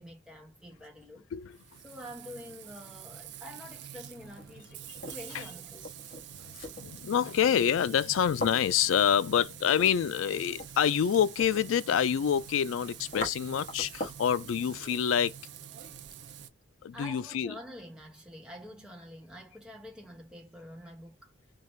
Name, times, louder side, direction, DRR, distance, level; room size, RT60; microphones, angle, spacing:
voice 1, 0.0-1.3 1.8-5.9 14.3-15.1 16.9-21.3, equal, 5° right, 1.2 m, -47 dB
Frying (food), 1.5-16.5, right 10 dB, 60° right, 0.5 m, -47 dB
sound 1, 4.1-14.3, left 2 dB, 45° left, 1.4 m, -43 dB
voice 2, 6.7-15.4 16.8-17.5, left 8 dB, 85° left, 0.3 m, -27 dB
4.6 x 2.4 x 3.2 m
head